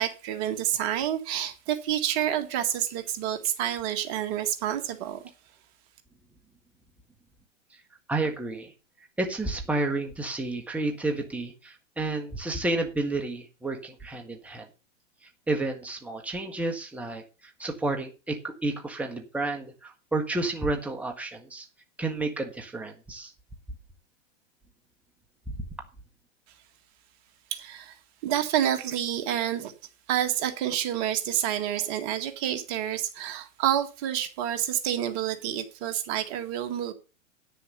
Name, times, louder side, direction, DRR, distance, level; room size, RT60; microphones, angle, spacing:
voice 1, 0.0-5.2 27.5-27.9 28.2-29.7 30.1-36.9, right 11 dB, 45° right, 1.7 m, -28 dB
voice 2, 8.1-8.7 9.2-14.7 15.2-21.7 22.0-23.3, right 2 dB, 5° right, 1.6 m, -31 dB
10.0 x 6.9 x 6.6 m
hypercardioid pair, 125°, 38 cm